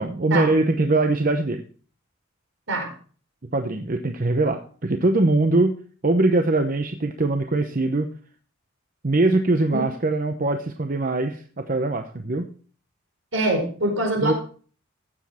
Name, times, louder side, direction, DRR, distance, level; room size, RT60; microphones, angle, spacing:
voice 1, 0.0-1.6 3.5-5.8 6.0-8.1 9.0-12.5 14.2-14.3, right 2 dB, 45° right, 6 dB, 0.8 m, -22 dB
voice 2, 13.3-14.3, right 1 dB, 75° right, 2 dB, 5.0 m, -24 dB
15.5 x 7.4 x 4.3 m, 0.42 s
head